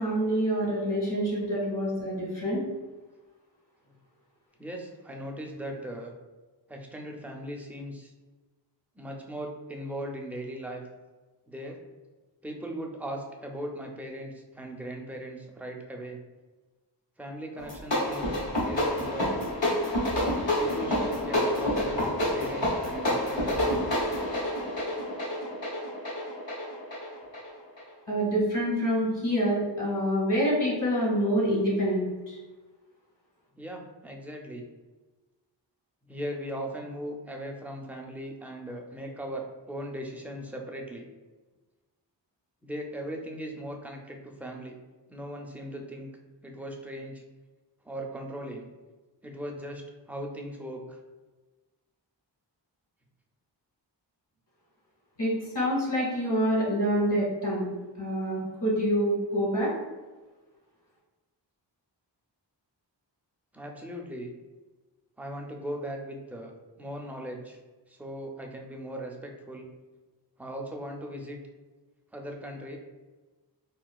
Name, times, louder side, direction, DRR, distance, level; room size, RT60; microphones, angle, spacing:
voice 1, 0.0-2.6 28.1-32.4 55.2-57.7 58.0-59.7, equal, 65° left, -5 dB, 1.5 m, -26 dB
voice 2, 4.6-6.1 6.7-8.1 9.0-10.8 11.5-11.8 12.4-16.2 17.2-19.5 20.6-24.1 33.6-34.6 36.0-41.1 42.6-44.7 45.1-46.1 46.4-47.2 47.8-48.7 49.2-49.8 50.1-51.0 63.5-64.3 65.2-67.6 67.9-69.7 70.4-71.4 72.1-72.8, right 1 dB, 5° right, 1 dB, 0.4 m, -38 dB
sound 1, 17.6-27.9, left 1 dB, 85° left, 1.0 m, -28 dB
3.8 x 2.3 x 2.3 m, 1.2 s
wide cardioid pair, 70°, 43 cm